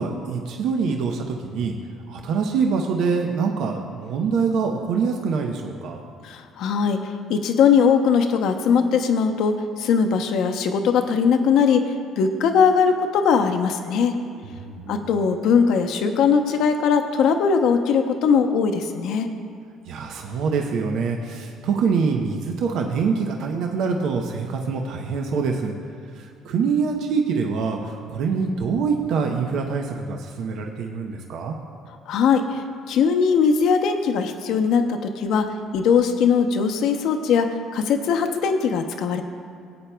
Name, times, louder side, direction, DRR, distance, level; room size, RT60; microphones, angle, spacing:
voice 1, 0.0-1.7 2.1-6.0 14.4-15.0 19.9-25.7 26.1-31.5, right 5 dB, 70° right, 2 dB, 0.8 m, -25 dB
voice 2, 6.2-14.2 14.9-19.3 32.1-32.6 32.9-39.2, left 6 dB, 70° left, 6 dB, 0.8 m, -20 dB
19.0 x 8.6 x 2.3 m, 2.4 s
cardioid pair, 95°, 0 cm